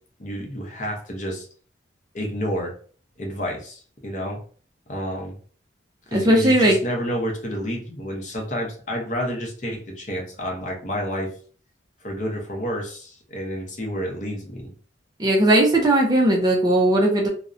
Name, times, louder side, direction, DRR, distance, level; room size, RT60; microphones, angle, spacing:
voice 1, 0.2-1.5 2.1-2.7 3.2-4.4 4.9-5.4 6.1-11.3 12.0-14.7, equal, 40° left, 1 dB, 0.6 m, -29 dB
voice 2, 6.1-6.8 15.2-17.3, right 1 dB, 20° right, 1 dB, 0.4 m, -18 dB
2.5 x 2.0 x 2.4 m, 0.43 s
head